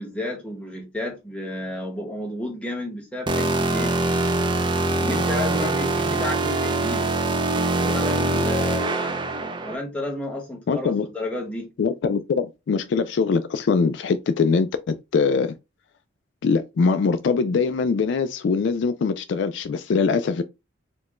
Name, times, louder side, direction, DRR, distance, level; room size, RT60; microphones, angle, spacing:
voice 1, 0.0-3.9 5.0-7.1 7.8-9.2 9.6-11.7, left 1 dB, 5° left, 1.1 m, -31 dB
sound 1, 3.3-9.7, right 2 dB, 25° right, 0.4 m, -23 dB
voice 2, 10.7-11.1 11.8-15.5 16.4-20.4, left 5 dB, 65° left, 0.3 m, -22 dB
4.3 x 2.2 x 3.0 m
head